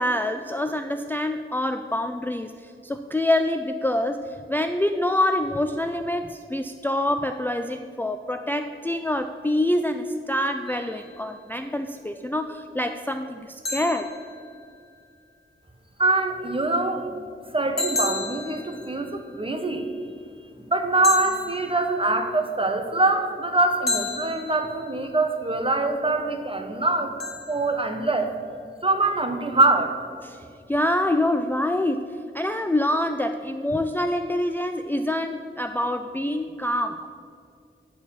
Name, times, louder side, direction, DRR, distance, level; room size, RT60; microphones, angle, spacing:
voice 1, 0.0-14.1 30.2-30.4 30.7-37.1, left 1 dB, 10° left, 7 dB, 0.4 m, -26 dB
sound 1, 10.7-11.4 13.6-15.1 17.8-19.5 21.0-22.4 23.9-25.2 27.2-28.4, left 2 dB, 50° left, 1.8 m, -33 dB
voice 2, 16.0-17.2 17.5-19.9 20.7-27.1 27.5-28.3 28.8-29.9, right 2 dB, 25° right, 5 dB, 1.0 m, -24 dB
10.5 x 4.7 x 7.2 m, 2.3 s
wide cardioid pair, 70°, 21 cm